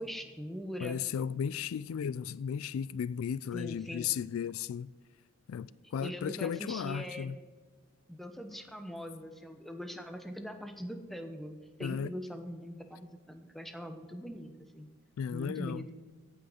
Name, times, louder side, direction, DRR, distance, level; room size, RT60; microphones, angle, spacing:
voice 1, 0.0-1.0 3.5-4.1 6.0-7.3 8.1-14.9 15.3-15.9, equal, ahead, 0.9 m, -42 dB
voice 2, 0.8-4.9 5.5-7.4 11.8-12.1 15.2-15.8, left 8 dB, 80° left, 0.3 m, -35 dB
15.5 x 6.1 x 5.0 m
head